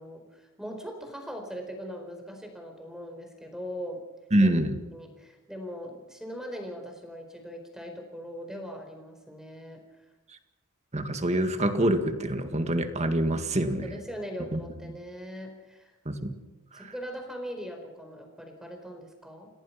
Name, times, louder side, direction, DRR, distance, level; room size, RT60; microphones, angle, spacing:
voice 1, 0.0-4.0 4.4-4.5 4.9-9.8 13.7-15.9 16.7-19.5, equal, ahead, 4 dB, 4.4 m, -40 dB
voice 2, 4.3-4.8 10.9-14.0 14.5-14.6 16.1-16.3 16.7-16.9, right 1 dB, 30° right, 7 dB, 2.0 m, -26 dB
29.0 x 18.0 x 5.8 m, 1.1 s
head